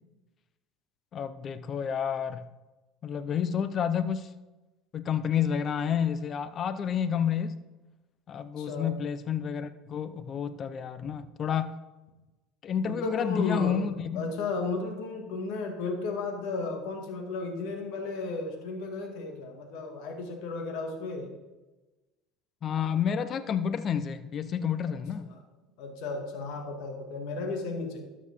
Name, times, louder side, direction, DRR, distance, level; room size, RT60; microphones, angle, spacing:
voice 1, 1.1-2.5 3.0-4.3 4.9-7.6 8.3-11.8 12.6-14.3 22.6-25.3, left 8 dB, 40° left, 13 dB, 0.6 m, -30 dB
voice 2, 8.6-9.0 12.9-13.8 14.2-21.3 25.8-28.1, left 3 dB, 70° left, 3 dB, 2.0 m, -34 dB
12.5 x 7.4 x 3.7 m, 1.1 s
supercardioid pair, 95°, 0 cm